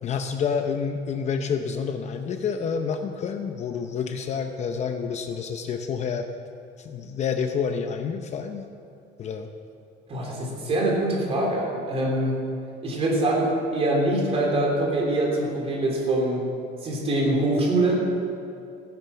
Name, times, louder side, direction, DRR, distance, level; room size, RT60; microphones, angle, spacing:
voice 1, 0.0-6.3 6.8-8.7 9.2-9.5, left 6 dB, 35° left, 6 dB, 0.7 m, -28 dB
voice 2, 10.1-12.4 12.8-16.4 16.8-18.0, right 1 dB, 30° right, -2 dB, 3.4 m, -24 dB
15.0 x 10.5 x 7.0 m, 2.6 s
cardioid pair, 175°, 19 cm